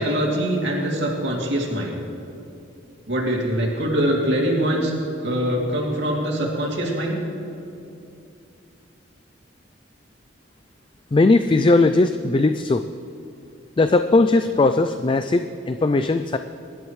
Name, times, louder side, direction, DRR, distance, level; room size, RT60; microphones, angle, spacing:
voice 1, 0.0-1.9 3.1-4.9 5.2-7.2, equal, 60° right, -2 dB, 2.7 m, -23 dB
voice 2, 11.1-12.8 13.8-16.4, left 2 dB, 25° left, 9 dB, 0.3 m, -18 dB
23.0 x 11.5 x 3.2 m, 2.6 s
head